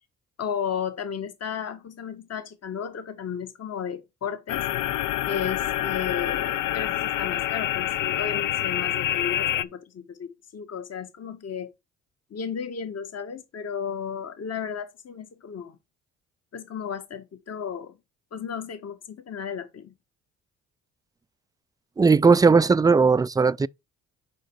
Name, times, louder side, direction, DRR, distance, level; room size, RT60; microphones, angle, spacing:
voice 1, 0.4-4.7 5.3-11.7 12.3-15.8 16.5-17.9 18.3-19.9, left 7 dB, 50° left, 1.6 m, -34 dB
sound 1, 4.5-9.6, left 12 dB, 70° left, 0.6 m, -27 dB
voice 2, 22.0-23.7, right 4 dB, 10° right, 0.3 m, -18 dB
6.5 x 5.3 x 4.7 m
supercardioid pair, 60°, 33 cm